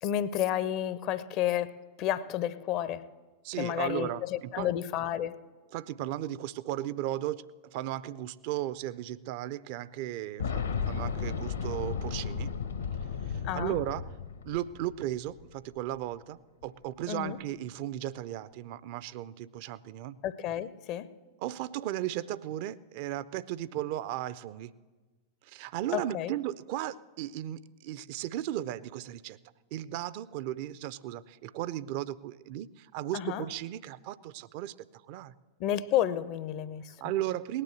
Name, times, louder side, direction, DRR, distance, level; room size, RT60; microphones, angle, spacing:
voice 1, 0.0-3.1 3.6-5.4 13.4-13.8 17.1-17.4 20.2-21.1 25.9-26.3 33.1-33.5 35.6-36.9, left 11 dB, 40° left, 0.6 m, -31 dB
voice 2, 3.4-4.7 5.7-12.5 13.2-14.1 14.4-20.2 21.4-24.7 25.4-29.4 29.7-34.7 35.1-35.4 37.0-37.6, right 13 dB, 45° right, 0.5 m, -36 dB
Boom, 10.4-15.1 15.4-15.5 16.6-16.7, left 6 dB, 70° left, 1.1 m, -34 dB
18.0 x 9.9 x 7.8 m
figure-of-eight pair, 90°, 0 cm